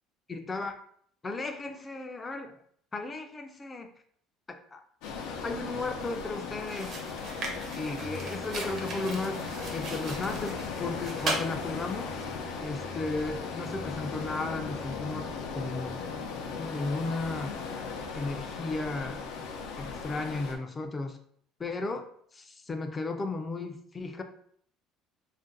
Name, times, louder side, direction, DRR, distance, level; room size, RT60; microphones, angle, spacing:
voice 1, 0.3-0.7 1.2-2.5 2.9-3.9 4.5-4.8 5.4-7.0 7.7-9.4 9.7-12.1 12.6-16.0 16.6-17.6 18.1-19.3 19.8-21.2 21.6-22.1 22.3-24.2, left 3 dB, 20° left, 5 dB, 0.4 m, -35 dB
sound 1, 5.0-20.6, left 5 dB, 85° left, 0.5 m, -37 dB
sound 2, 6.0-6.2 6.6-11.5, right 2 dB, 40° right, 0.6 m, -38 dB
Musical instrument, 8.0-16.5, equal, 70° right, 0.9 m, -48 dB
2.5 x 2.1 x 3.8 m, 0.63 s
cardioid pair, 140°, 0 cm